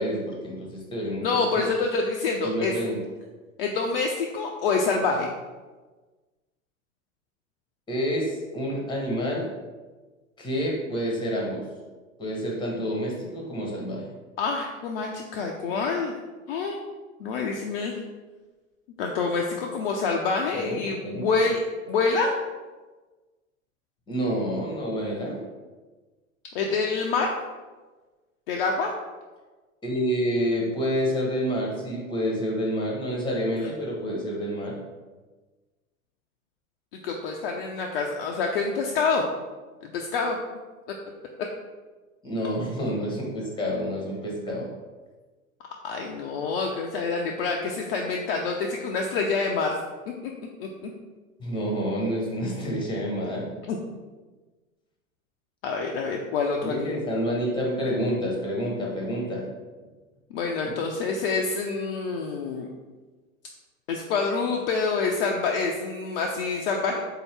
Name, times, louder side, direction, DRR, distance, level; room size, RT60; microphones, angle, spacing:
voice 1, 0.0-1.6 2.4-3.0 7.9-9.5 10.4-11.6 12.2-14.1 20.5-21.3 24.1-25.4 29.8-34.8 42.2-44.7 51.4-53.5 56.6-59.4, equal, 10° left, -2 dB, 0.9 m, -28 dB
voice 2, 1.2-2.8 3.6-5.3 14.4-16.1 16.5-16.8 17.2-18.0 19.0-21.6 21.9-22.3 26.5-27.3 28.5-28.9 37.0-39.2 39.8-40.4 45.8-49.8 50.2-50.3 53.7-53.8 55.6-57.0 60.3-62.7 63.9-67.0, left 4 dB, 45° left, 1 dB, 0.4 m, -26 dB
4.0 x 2.7 x 3.2 m, 1.3 s
figure-of-eight pair, 90°, 41 cm